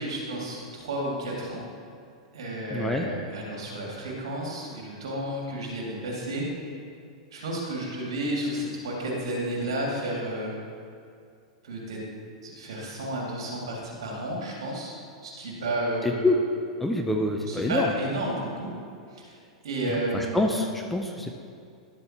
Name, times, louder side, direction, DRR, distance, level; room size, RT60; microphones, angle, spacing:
voice 1, 0.0-1.6 2.3-6.5 7.3-10.5 11.6-12.0 12.4-14.9 15.2-16.3 17.5-18.7 19.1-19.4 19.6-20.5, right 1 dB, 60° right, -2 dB, 2.2 m, -31 dB
voice 2, 2.7-3.1 16.0-16.4 16.8-17.9 19.9-21.3, left 1 dB, 5° left, 1 dB, 0.6 m, -26 dB
11.5 x 7.7 x 2.9 m, 2.4 s
figure-of-eight pair, 90°, 3 cm